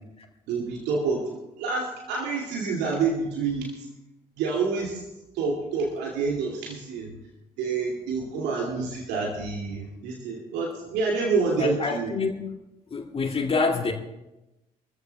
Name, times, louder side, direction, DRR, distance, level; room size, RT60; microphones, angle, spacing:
voice 1, 0.5-1.3 1.6-3.9 4.4-5.0 5.3-7.1 7.6-12.1, right 4 dB, 60° right, -2 dB, 2.5 m, -28 dB
voice 2, 11.6-12.6 12.9-13.9, left 4 dB, 30° left, 2 dB, 2.2 m, -27 dB
25.0 x 14.5 x 2.3 m, 0.96 s
figure-of-eight pair, 45°, 20 cm